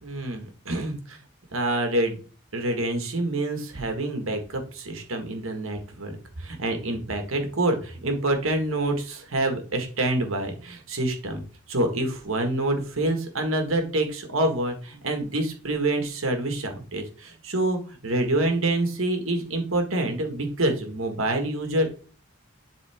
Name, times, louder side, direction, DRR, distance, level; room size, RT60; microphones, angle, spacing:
voice 1, 0.0-1.2 1.5-2.2 2.5-6.1 6.4-11.4 11.7-21.9, right 1 dB, 85° right, 5 dB, 1.7 m, -27 dB
11.0 x 3.8 x 3.6 m, 0.38 s
head